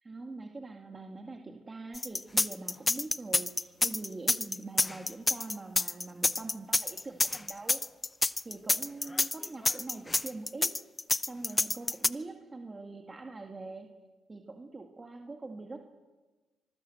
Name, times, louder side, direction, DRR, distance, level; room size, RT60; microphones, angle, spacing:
voice 1, 0.0-7.8 8.4-10.7 11.3-13.9 14.3-15.8, right 3 dB, 25° right, 3 dB, 2.1 m, -43 dB
sound 1, 1.9-12.1, left 2 dB, 20° left, 0.6 m, -28 dB
25.5 x 20.0 x 7.9 m, 1.2 s
cardioid pair, 90°, 0 cm